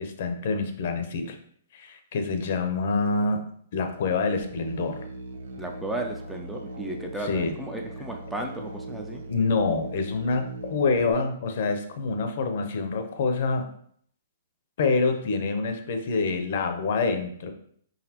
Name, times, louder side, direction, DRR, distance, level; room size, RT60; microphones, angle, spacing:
voice 1, 0.0-1.4 1.7-3.4 3.7-5.0 7.2-7.6 9.3-13.6 14.8-17.5, left 4 dB, 50° left, 6 dB, 0.7 m, -26 dB
Musical instrument, 4.4-11.1, right 1 dB, 90° right, 0.8 m, -39 dB
voice 2, 5.6-9.2, right 1 dB, 5° right, 1 dB, 0.3 m, -34 dB
4.6 x 4.0 x 2.9 m, 0.62 s
hypercardioid pair, 165°, 0 cm